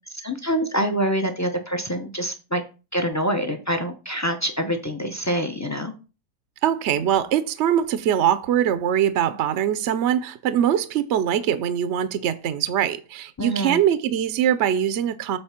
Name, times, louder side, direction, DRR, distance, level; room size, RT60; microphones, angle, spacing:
voice 1, 0.2-2.6 2.9-5.9 13.4-13.8, equal, 25° left, 0.3 m, -25 dB
voice 2, 6.6-15.4, right 10 dB, 65° right, 0.7 m, -22 dB
7.9 x 3.4 x 5.7 m
omnidirectional pair, 1.7 m